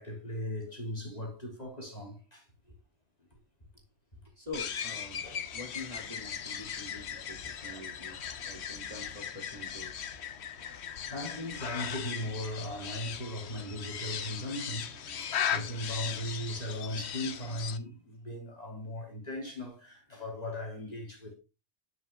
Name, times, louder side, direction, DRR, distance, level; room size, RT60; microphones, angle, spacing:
voice 1, 0.0-2.4 5.2-5.4 11.1-14.9 15.3-21.3, left 1 dB, 35° left, 3.7 m, -38 dB
voice 2, 4.4-5.2 5.5-8.2 8.5-9.9, left 2 dB, 30° right, 2.8 m, -45 dB
sound 1, 4.5-17.8, left 8 dB, 65° left, 1.1 m, -38 dB
12.5 x 6.4 x 2.3 m
omnidirectional pair, 1.2 m